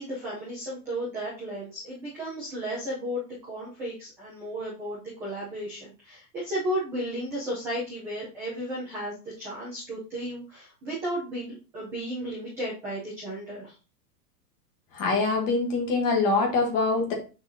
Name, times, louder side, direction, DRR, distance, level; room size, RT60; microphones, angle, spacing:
voice 1, 0.0-13.7, equal, 5° right, -8 dB, 0.6 m, -34 dB
voice 2, 14.9-17.1, left 3 dB, 15° left, 1 dB, 1.2 m, -24 dB
6.7 x 6.1 x 2.7 m, 0.33 s
supercardioid pair, 180°, 48 cm